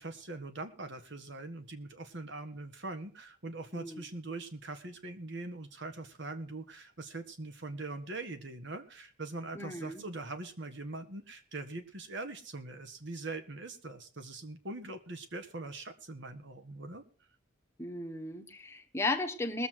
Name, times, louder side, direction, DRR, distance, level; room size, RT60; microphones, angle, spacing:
voice 1, 0.0-17.0, right 2 dB, 55° right, 8 dB, 1.6 m, -42 dB
voice 2, 9.5-10.0 17.8-19.7, left 2 dB, 10° left, 3 dB, 1.2 m, -35 dB
21.0 x 7.6 x 4.7 m, 0.40 s
head